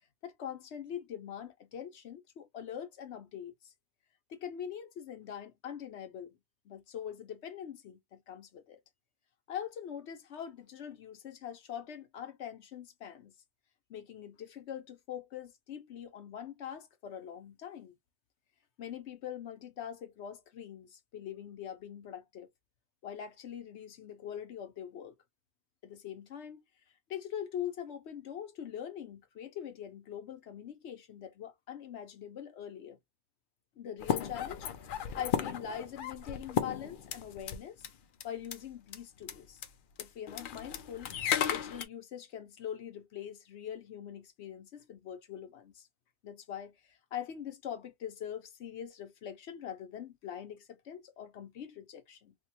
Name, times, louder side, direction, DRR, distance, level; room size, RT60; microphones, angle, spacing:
voice 1, 0.2-3.7 4.3-6.3 6.6-8.8 9.5-13.3 13.9-18.0 18.8-22.5 23.0-25.2 25.8-26.6 27.1-33.0 33.8-37.8 38.2-39.6 40.0-41.1 41.5-45.9 46.2-52.3, left 9 dB, 80° left, 1.0 m, -43 dB
sound 1, 34.0-37.6 37.8-37.9 38.2-38.6 38.9-39.0 39.2-39.4 39.6-39.7 40.0-41.9, left 8 dB, 60° left, 0.6 m, -34 dB
3.5 x 2.1 x 2.8 m
omnidirectional pair, 1.1 m